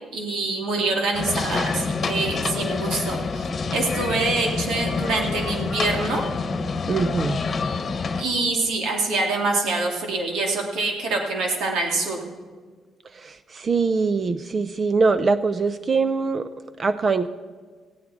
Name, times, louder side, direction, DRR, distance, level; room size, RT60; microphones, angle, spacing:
voice 1, 0.1-6.2 8.2-12.3, right 3 dB, 80° right, 1 dB, 2.7 m, -25 dB
sound 1, 1.1-8.2, left 4 dB, 40° left, 1.2 m, -27 dB
voice 2, 6.9-7.4 13.1-16.5 16.8-17.3, right 4 dB, 40° right, 12 dB, 0.6 m, -23 dB
18.0 x 15.5 x 4.3 m, 1.4 s
cardioid pair, 90°, 0 cm